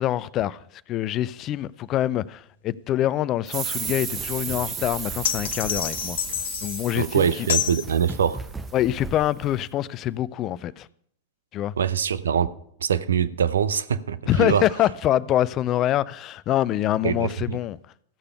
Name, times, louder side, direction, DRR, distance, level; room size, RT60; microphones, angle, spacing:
voice 1, 0.0-6.2 6.6-7.5 8.7-10.9 11.5-11.7 14.3-17.8, left 13 dB, 35° left, 0.4 m, -25 dB
sound 1, 3.5-9.6, right 3 dB, 10° right, 0.6 m, -40 dB
sound 2, 3.5-8.8, right 6 dB, 30° right, 1.6 m, -34 dB
sound 3, 5.2-6.9 7.5-7.8, left 10 dB, 60° left, 0.9 m, -28 dB
voice 2, 6.9-8.4 11.8-12.5 12.8-14.6 17.0-17.6, right 8 dB, 70° right, 0.6 m, -23 dB
15.0 x 6.7 x 5.7 m
figure-of-eight pair, 90°, 0 cm